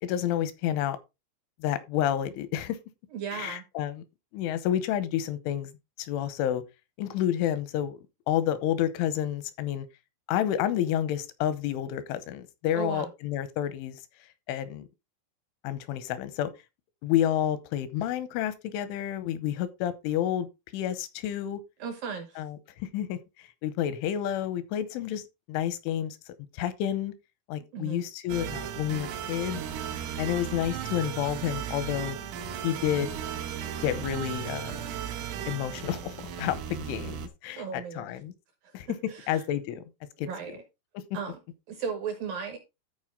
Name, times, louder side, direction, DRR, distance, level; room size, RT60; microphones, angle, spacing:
voice 1, 0.0-1.0 1.6-2.8 3.3-4.0 4.3-5.7 6.0-6.6 7.0-9.9 10.3-14.0 14.5-14.9 15.6-16.5 17.0-20.5 20.7-21.6 22.4-26.2 26.5-27.1 27.5-29.6 30.2-32.2 32.6-33.1 33.8-34.8 35.5-38.3 38.7-38.9 39.3-39.8 40.2-40.3, left 11 dB, 85° left, 3.3 m, -30 dB
voice 2, 3.1-3.6 12.7-13.1 21.8-22.4 27.7-28.0 37.6-38.1 39.1-39.5 40.3-40.6 41.1-41.4 41.7-42.6, right 6 dB, 70° right, 2.2 m, -36 dB
sound 1, 28.3-37.3, right 9 dB, 90° right, 3.7 m, -36 dB
13.5 x 4.8 x 3.7 m
omnidirectional pair, 5.6 m